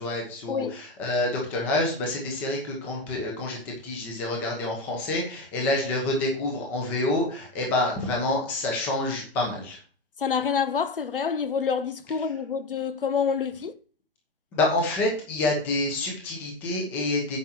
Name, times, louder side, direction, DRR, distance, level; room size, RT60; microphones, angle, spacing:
voice 1, 0.0-3.6 3.8-9.8 14.5-17.4, left 2 dB, 5° left, 1.0 m, -27 dB
voice 2, 10.2-13.8, left 6 dB, 60° left, 0.8 m, -27 dB
9.7 x 6.5 x 4.5 m
hypercardioid pair, 175°, 31 cm